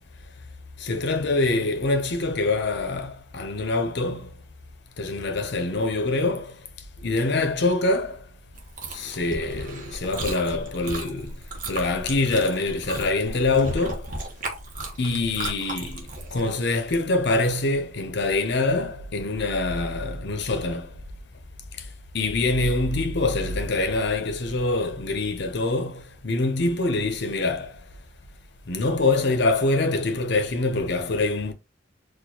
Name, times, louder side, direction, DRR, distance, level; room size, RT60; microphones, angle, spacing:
voice 1, 0.8-4.3 5.0-6.6 7.0-8.2 8.9-11.3 11.7-14.1 15.0-20.9 22.1-27.7 28.7-31.5, left 2 dB, 65° left, 0.7 m, -25 dB
Chewing mastication, 8.5-16.4, right 2 dB, 45° right, 1.0 m, -35 dB
4.4 x 2.4 x 2.8 m
head